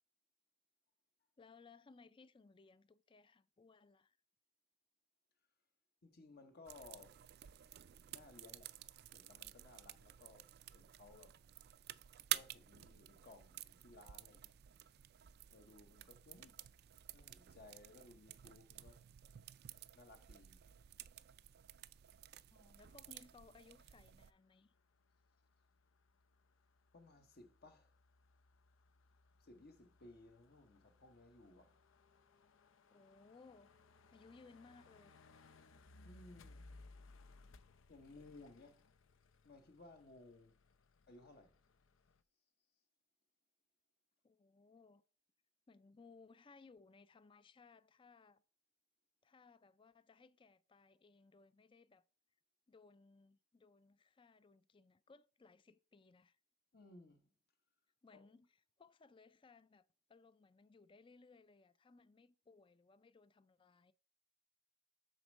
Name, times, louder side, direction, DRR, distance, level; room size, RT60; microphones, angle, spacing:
voice 1, 1.4-4.2 22.5-24.7 32.9-33.7 34.1-35.2 44.2-45.0 45.7-48.4 49.2-52.0 52.7-56.4 58.0-63.9, left 4 dB, 25° left, 0.4 m, -64 dB
voice 2, 6.0-7.2 8.1-11.4 12.3-14.6 15.5-16.6 17.1-19.0 19.9-20.6 26.9-27.9 29.4-31.8 36.0-36.7 37.9-38.8 39.4-40.5 41.1-41.6 56.7-57.3 58.1-58.2, left 2 dB, 55° left, 0.9 m, -60 dB
sound 1, 6.7-24.3, right 14 dB, 55° right, 0.3 m, -51 dB
sound 2, 24.3-42.2, left 3 dB, 85° left, 0.6 m, -65 dB
6.5 x 4.3 x 6.3 m
head